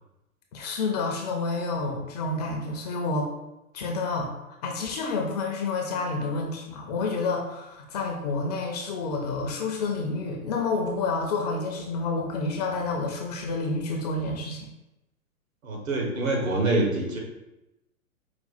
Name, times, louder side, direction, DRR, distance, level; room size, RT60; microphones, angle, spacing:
voice 1, 0.5-3.3 3.7-4.3 4.6-14.7, left 3 dB, 30° left, 1 dB, 0.5 m, -29 dB
voice 2, 15.6-17.2, right 2 dB, 70° right, 0 dB, 1.5 m, -25 dB
5.0 x 2.2 x 4.1 m, 0.95 s
hypercardioid pair, 120°, 43 cm